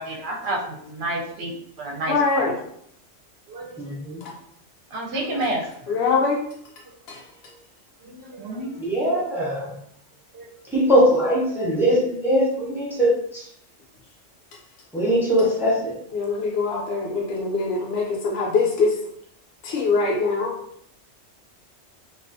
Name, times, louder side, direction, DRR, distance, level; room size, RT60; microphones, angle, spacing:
voice 1, 0.0-2.6 3.5-3.8 4.9-6.0 8.0-8.9 10.3-10.5, right 1 dB, 70° right, -1 dB, 0.8 m, -30 dB
voice 2, 2.1-2.5 4.2-4.3 5.9-6.4 7.1-7.2 16.1-18.9 19.6-20.5, left 4 dB, 65° left, -2 dB, 0.8 m, -23 dB
voice 3, 3.8-4.2 8.8-9.7 10.7-13.5 14.9-15.9, equal, 5° right, -6 dB, 0.4 m, -21 dB
2.3 x 2.3 x 2.5 m, 0.67 s
omnidirectional pair, 1.2 m